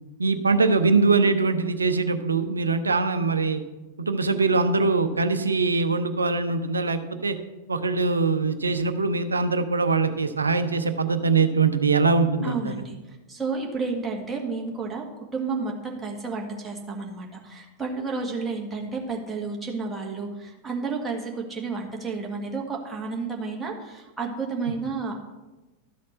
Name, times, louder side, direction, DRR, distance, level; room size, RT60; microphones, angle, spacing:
voice 1, 0.2-3.6 4.0-7.4 7.7-12.7, right 4 dB, 75° right, 9 dB, 0.6 m, -22 dB
voice 2, 12.4-25.1, right 4 dB, 10° right, -1 dB, 1.7 m, -31 dB
12.5 x 4.2 x 6.4 m, 1.1 s
figure-of-eight pair, 90°, 0 cm